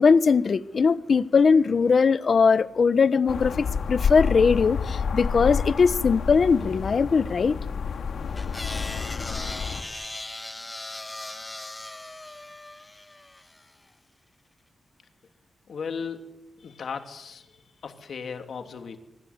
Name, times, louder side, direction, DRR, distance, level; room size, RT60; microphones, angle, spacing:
voice 1, 0.0-7.6, left 5 dB, 50° left, 1.0 m, -20 dB
sound 1, 3.3-9.8, left 6 dB, 90° left, 2.8 m, -29 dB
sound 2, 8.4-13.7, left 2 dB, 15° left, 1.4 m, -38 dB
voice 2, 15.7-19.0, left 5 dB, 70° left, 2.9 m, -37 dB
25.0 x 24.5 x 9.6 m
wide cardioid pair, 150°, 0 cm